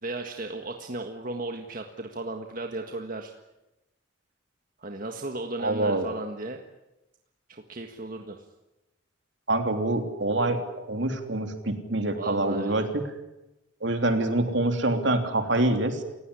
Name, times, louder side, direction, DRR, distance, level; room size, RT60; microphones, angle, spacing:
voice 1, 0.0-3.3 4.8-6.6 7.5-8.4 12.1-12.9, right 2 dB, 45° right, 4 dB, 1.7 m, -35 dB
voice 2, 5.6-6.1 9.5-12.9 13.8-16.0, right 2 dB, 65° right, 6 dB, 3.3 m, -25 dB
29.0 x 17.0 x 10.0 m, 0.98 s
head